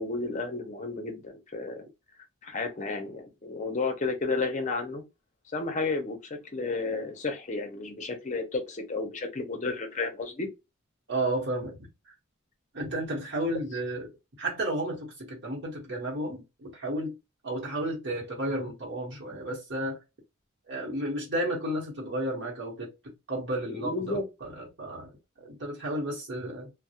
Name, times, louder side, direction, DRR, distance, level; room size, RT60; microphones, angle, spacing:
voice 1, 0.0-1.8 2.4-5.0 5.5-10.5 23.7-24.2, left 3 dB, 35° left, 0.6 m, -32 dB
voice 2, 11.1-11.8 12.7-14.1 14.4-17.1 17.4-20.0 20.7-22.9 23.3-26.7, right 1 dB, 55° right, 0.9 m, -32 dB
2.3 x 2.0 x 2.7 m
head